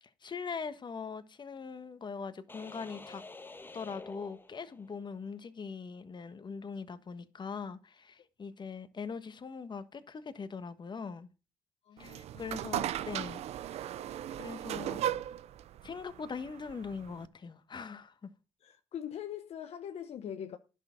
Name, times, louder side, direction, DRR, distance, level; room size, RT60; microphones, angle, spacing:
voice 1, 0.0-3.2 3.7-11.3 12.0-13.4 13.7-13.8 14.4-15.1 15.8-18.3, left 5 dB, 40° left, 1.3 m, -41 dB
sound 1, 2.5-5.1, left 3 dB, 20° left, 1.1 m, -49 dB
voice 2, 11.9-12.5 18.6-20.6, left 9 dB, 65° left, 0.9 m, -42 dB
sound 2, 12.0-17.3, right 12 dB, 70° right, 0.5 m, -37 dB
10.5 x 6.6 x 5.8 m
supercardioid pair, 55°, 11 cm